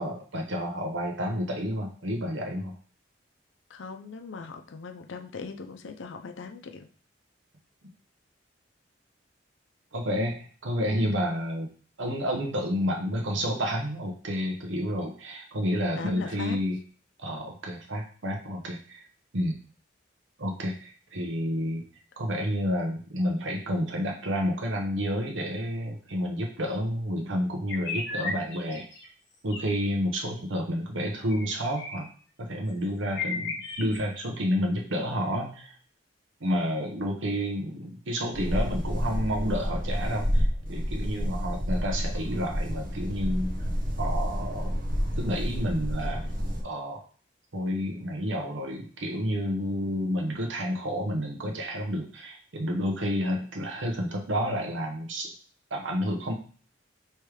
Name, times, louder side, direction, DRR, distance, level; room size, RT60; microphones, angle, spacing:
voice 1, 0.0-2.7 9.9-11.7 12.0-16.8 17.2-19.0 19.3-19.6 20.4-21.8 22.2-28.9 29.4-32.1 32.4-35.7 36.4-43.6 44.0-44.8 45.2-46.2 46.6-47.0 47.5-55.3 55.7-56.3, equal, 85° right, 1 dB, 0.9 m, -30 dB
voice 2, 3.7-6.9 16.0-16.6, left 4 dB, 85° left, 5 dB, 0.5 m, -39 dB
sound 1, 27.7-29.0 29.5-29.7 31.3-32.1 32.7-32.8 33.1-34.0, left 4 dB, 60° left, 1.1 m, -35 dB
sound 2, 38.3-46.6, equal, 45° right, 0.9 m, -29 dB
3.2 x 3.2 x 4.8 m, 0.41 s
head